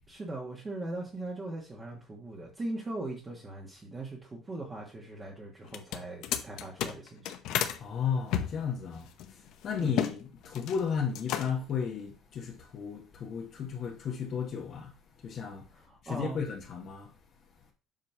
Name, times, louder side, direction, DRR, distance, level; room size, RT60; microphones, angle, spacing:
voice 1, 0.1-7.3 9.8-10.0 15.8-16.4, right 2 dB, 20° right, 1.3 m, -40 dB
sound 1, 5.6-7.8 8.3-10.2 10.4-10.8 11.1-11.7, left 10 dB, 70° left, 0.8 m, -33 dB
voice 2, 7.8-17.1, left 6 dB, 45° left, 1.2 m, -34 dB
7.5 x 3.1 x 5.5 m
cardioid pair, 140°, 0 cm